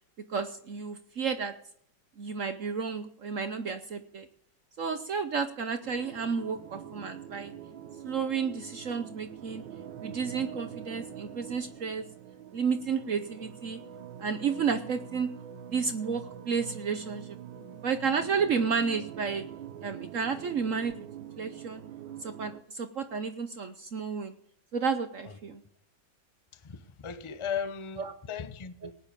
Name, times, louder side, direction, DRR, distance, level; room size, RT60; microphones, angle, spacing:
voice 1, 0.3-1.5 2.2-4.3 4.8-7.5 8.0-9.6 10.0-12.1 12.5-13.8 14.2-15.3 15.7-17.4 17.8-19.5 19.8-21.1 21.4-21.8 22.2-24.3 24.7-25.6, right 5 dB, 55° right, 1.0 m, -31 dB
sound 1, 5.8-22.6, right 9 dB, 90° right, 1.7 m, -45 dB
voice 2, 26.5-29.0, left 7 dB, 35° left, 0.5 m, -37 dB
18.5 x 9.9 x 5.1 m
omnidirectional pair, 2.0 m